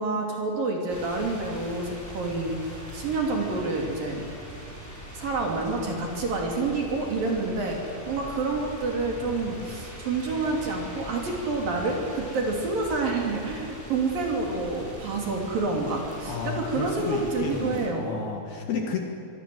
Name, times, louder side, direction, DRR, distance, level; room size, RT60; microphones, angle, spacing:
voice 1, 0.0-4.2 5.1-18.2, right 3 dB, 50° right, 1 dB, 4.0 m, -28 dB
sound 1, 0.9-17.9, equal, 5° left, 5.3 m, -41 dB
voice 2, 16.3-19.0, left 5 dB, 60° left, 2 dB, 3.4 m, -31 dB
25.0 x 23.0 x 7.8 m, 2.7 s
omnidirectional pair, 5.9 m